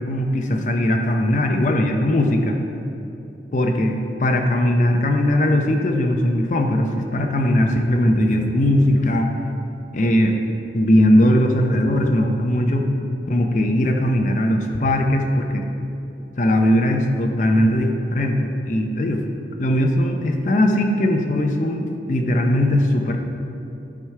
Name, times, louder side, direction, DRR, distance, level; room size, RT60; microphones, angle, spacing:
voice 1, 0.0-2.6 3.5-9.3 9.9-10.3 10.7-12.9 13.3-15.7 16.4-19.2 19.6-23.2, left 1 dB, 45° left, 2 dB, 0.6 m, -19 dB
11.0 x 4.9 x 4.5 m, 2.9 s
head